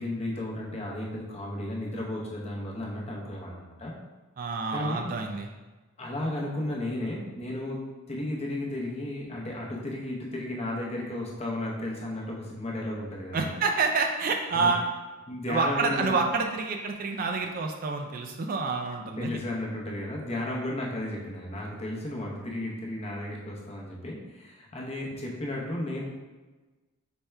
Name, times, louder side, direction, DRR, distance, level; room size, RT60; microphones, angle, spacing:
voice 1, 0.0-3.9 4.7-5.1 6.0-13.6 14.5-14.7 15.3-16.2 19.1-26.0, left 1 dB, 30° left, -2 dB, 0.7 m, -34 dB
voice 2, 4.4-5.5 13.3-14.8 15.5-19.3, right 4 dB, 40° right, 3 dB, 0.3 m, -28 dB
4.3 x 3.3 x 3.3 m, 1.2 s
head